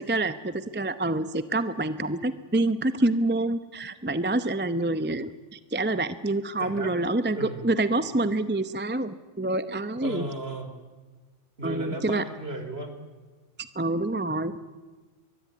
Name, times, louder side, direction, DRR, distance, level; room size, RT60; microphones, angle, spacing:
voice 1, 0.0-10.3 11.6-12.2 13.6-14.6, right 2 dB, 10° right, 12 dB, 0.7 m, -27 dB
voice 2, 6.6-6.9 7.4-7.6 10.0-10.7 11.6-12.9, right 1 dB, 55° right, 7 dB, 3.9 m, -35 dB
23.5 x 21.5 x 9.3 m, 1.4 s
omnidirectional pair, 1.2 m